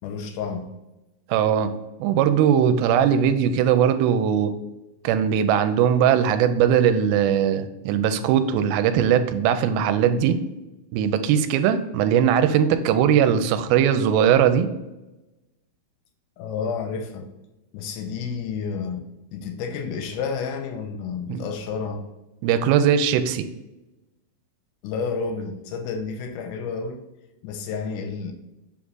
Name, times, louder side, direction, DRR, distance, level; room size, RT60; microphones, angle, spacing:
voice 1, 0.0-0.7 16.4-17.3 17.7-19.0 19.3-22.1 24.8-27.0 27.4-28.3, left 5 dB, 80° left, 1.9 m, -30 dB
voice 2, 1.3-1.7 2.0-4.5 5.0-10.4 10.9-14.7 21.3-21.4 22.4-23.5, right 8 dB, 85° right, 2.4 m, -20 dB
7.4 x 3.7 x 3.9 m
omnidirectional pair, 4.4 m